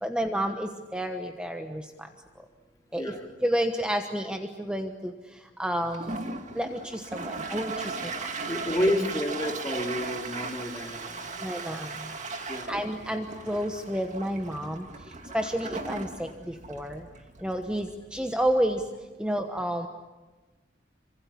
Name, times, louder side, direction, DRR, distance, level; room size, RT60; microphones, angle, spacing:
voice 1, 0.0-1.8 2.9-3.1 3.4-5.1 5.6-8.1 11.4-11.9 12.7-14.8 15.3-17.0 17.4-18.8 19.2-19.9, equal, 5° right, 5 dB, 1.2 m, -30 dB
voice 2, 2.9-3.3 8.5-11.4 12.5-12.8 15.2-15.4 19.2-19.3, left 1 dB, 20° left, 1 dB, 3.0 m, -30 dB
Toilet flush, 5.8-19.0, right 3 dB, 40° right, 2.2 m, -38 dB
27.5 x 25.5 x 8.5 m, 1.2 s
head